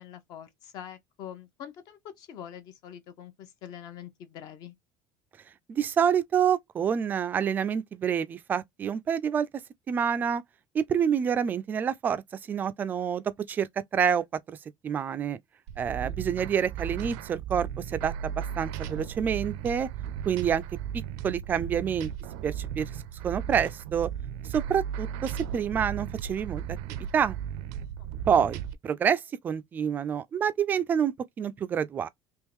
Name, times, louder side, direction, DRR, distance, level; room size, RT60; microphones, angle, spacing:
voice 1, 0.0-4.7 16.0-16.1 28.0-28.4, left 9 dB, 50° left, 0.8 m, -45 dB
voice 2, 5.7-9.5 9.9-10.4 10.7-12.2 12.5-14.6 14.8-15.4 15.8-19.9 20.3-20.6 21.2-22.1 22.4-22.9 23.2-24.1 24.5-26.6 27.1-27.4 28.3-32.1, right 8 dB, 20° right, 0.3 m, -27 dB
sound 1, 15.7-28.7, right 9 dB, 80° right, 0.5 m, -36 dB
3.5 x 3.0 x 3.0 m
cardioid pair, 175°, 9 cm